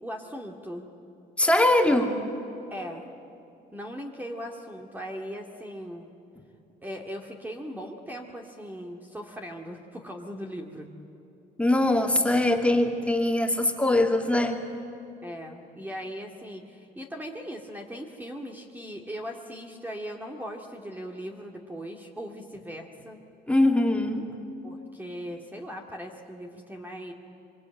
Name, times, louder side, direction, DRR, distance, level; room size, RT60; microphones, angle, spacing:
voice 1, 0.0-0.9 2.7-3.0 3.7-6.1 6.8-10.9 15.2-23.2 24.6-27.1, equal, 10° right, 1 dB, 2.2 m, -39 dB
voice 2, 1.4-2.2 11.6-14.6 23.5-24.2, left 1 dB, 5° left, 2 dB, 2.6 m, -22 dB
25.0 x 24.5 x 8.9 m, 2.9 s
cardioid pair, 110°, 17 cm